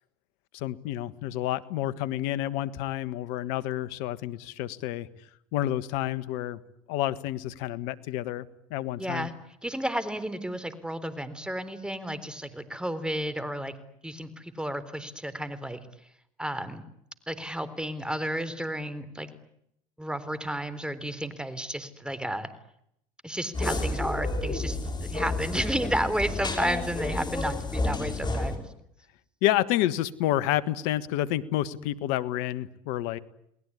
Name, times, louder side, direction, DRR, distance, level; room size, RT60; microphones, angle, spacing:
voice 1, 0.5-5.1 5.5-6.6 6.9-8.4 8.7-9.3 29.4-33.2, left 14 dB, 70° left, 16 dB, 1.6 m, -29 dB
voice 2, 9.0-9.3 9.6-13.7 14.0-15.8 16.4-16.8 17.3-19.3 20.0-22.5 23.2-28.7, right 1 dB, 5° right, 13 dB, 3.9 m, -32 dB
sound 1, 23.5-28.6, left 2 dB, 25° left, 5.9 m, -30 dB
30.0 x 20.0 x 9.8 m, 0.76 s
hypercardioid pair, 75°, 17 cm